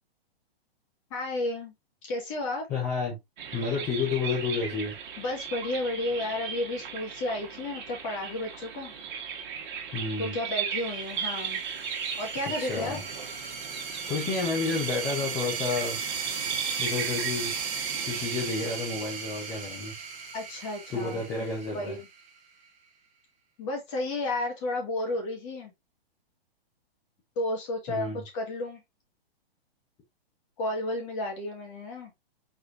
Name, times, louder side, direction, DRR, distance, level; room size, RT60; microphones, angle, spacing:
voice 1, 1.1-1.7 2.0-2.7 5.2-8.9 10.2-11.6 12.2-13.0 20.3-21.2 21.7-22.0 23.6-25.7 27.4-28.8 30.6-32.1, left 2 dB, 30° left, 1.9 m, -32 dB
voice 2, 2.7-3.2 3.5-4.9 9.9-10.4 12.4-13.0 14.1-16.0 16.8-17.6 18.0-19.9 20.9-22.0 27.9-28.2, left 4 dB, 10° left, 0.5 m, -30 dB
sound 1, 3.4-18.5, right 7 dB, 50° right, 1.6 m, -37 dB
sound 2, 11.0-22.3, right 6 dB, 20° right, 1.1 m, -36 dB
4.7 x 4.2 x 2.4 m
hypercardioid pair, 165°, 31 cm